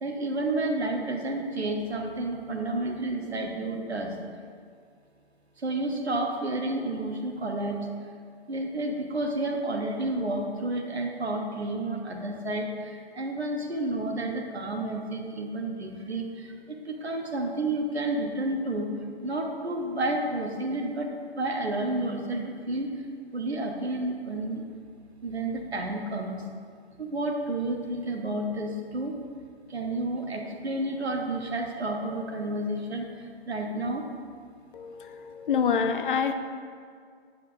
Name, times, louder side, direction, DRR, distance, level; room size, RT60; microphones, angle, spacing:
voice 1, 0.0-4.2 5.6-7.9 8.5-18.9 19.2-21.1 21.4-22.9 23.3-24.6 25.2-26.4 27.0-29.1 29.7-34.0, right 2 dB, 80° right, 2 dB, 1.0 m, -30 dB
voice 2, 34.7-36.3, left 6 dB, 55° left, 8 dB, 0.5 m, -27 dB
8.8 x 5.5 x 2.7 m, 2.1 s
figure-of-eight pair, 115°, 32 cm